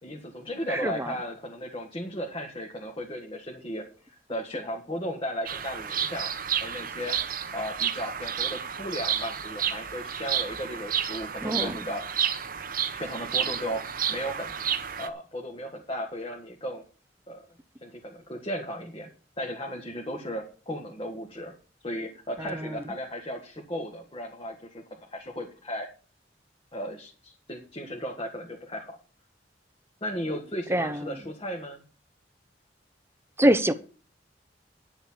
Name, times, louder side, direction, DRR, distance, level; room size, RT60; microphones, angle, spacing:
voice 1, 0.0-6.3 6.6-7.2 7.5-12.0 12.9-13.8 14.1-14.6 15.0-16.8 17.3-17.4 17.8-19.1 19.4-21.5 21.8-24.8 25.1-25.9 26.7-29.0 30.0-31.8, equal, 30° left, 1.8 m, -35 dB
voice 2, 0.7-1.1 11.4-11.7 22.4-22.8 30.7-31.1 33.4-33.7, right 1 dB, 15° right, 0.9 m, -25 dB
Bird vocalization bird call bird song, 5.5-15.1, right 8 dB, 50° right, 1.1 m, -31 dB
10.5 x 7.2 x 7.4 m
head